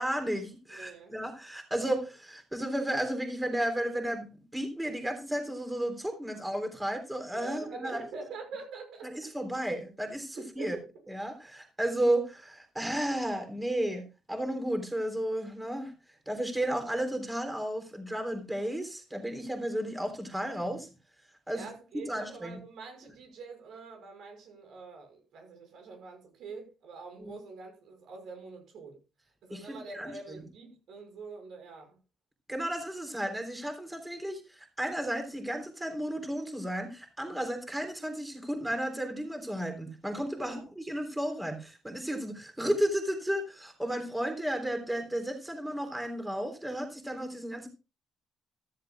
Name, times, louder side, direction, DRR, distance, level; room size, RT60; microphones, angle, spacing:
voice 1, 0.0-4.3 4.5-8.0 9.0-10.8 11.1-15.9 16.3-20.9 21.5-21.7 22.1-22.6 27.2-27.3 29.5-30.1 32.5-47.7, right 1 dB, 10° right, 5 dB, 3.5 m, -33 dB
voice 2, 0.7-1.1 7.3-9.1 10.3-10.8 21.5-29.0 29.4-32.0 40.3-40.7, right 4 dB, 75° right, 4 dB, 6.4 m, -45 dB
14.5 x 14.0 x 2.4 m, 0.29 s
cardioid pair, 90°, 0 cm